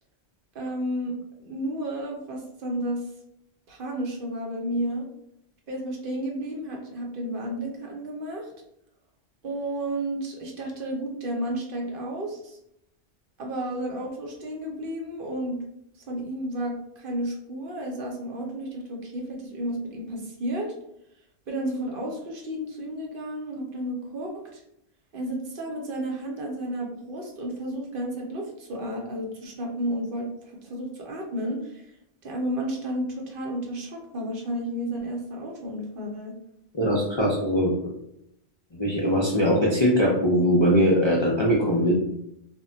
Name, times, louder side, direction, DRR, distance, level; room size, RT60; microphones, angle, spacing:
voice 1, 0.5-1.2 1.4-3.1 3.7-5.1 5.7-8.5 9.4-12.6 13.4-15.6 16.1-20.7 21.5-24.6 25.1-31.9 32.2-36.3, right 1 dB, 60° right, 0 dB, 0.7 m, -32 dB
voice 2, 36.7-37.9 38.7-41.9, equal, 45° left, -5 dB, 0.4 m, -21 dB
2.2 x 2.1 x 3.7 m, 0.78 s
omnidirectional pair, 1.1 m